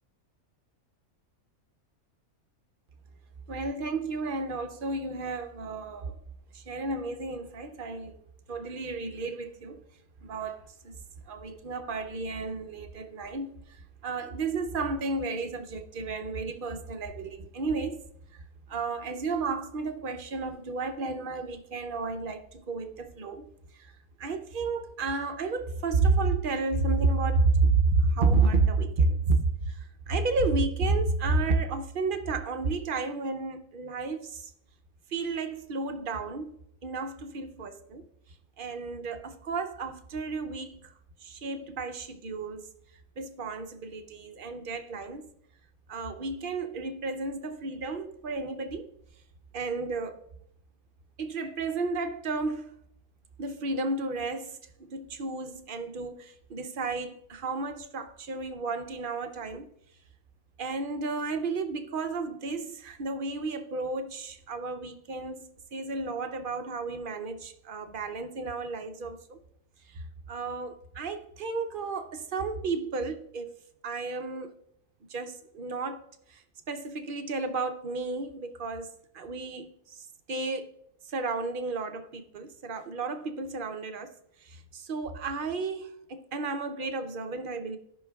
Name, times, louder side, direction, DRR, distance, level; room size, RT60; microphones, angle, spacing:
voice 1, 3.5-6.1 6.5-8.2 8.5-9.8 10.2-11.0 11.3-18.0 18.7-23.9 24.2-34.5 35.1-36.5 36.8-38.1 38.6-40.9 41.2-42.7 43.2-45.3 45.9-48.9 49.5-50.2 51.2-52.7 53.4-59.7 60.6-69.4 69.9-73.5 73.8-74.5 75.1-76.0 76.3-78.9 79.1-80.8 81.1-84.1 84.4-87.8, right 3 dB, 55° right, 0.6 m, -31 dB
16.5 x 5.6 x 2.3 m
omnidirectional pair, 1.5 m